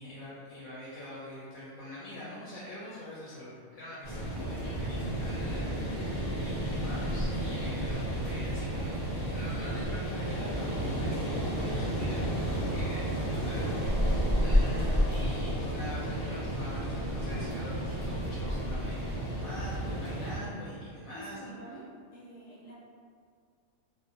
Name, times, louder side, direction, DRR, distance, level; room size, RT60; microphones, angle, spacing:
voice 1, 0.0-21.5, left 1 dB, 85° left, -8 dB, 1.0 m, -44 dB
sound 1, 4.0-20.4, equal, 5° left, 0.6 m, -31 dB
voice 2, 21.1-21.8 22.1-22.7, right 1 dB, 65° left, -8 dB, 0.8 m, -48 dB
2.4 x 2.1 x 2.5 m, 2.1 s
omnidirectional pair, 1.4 m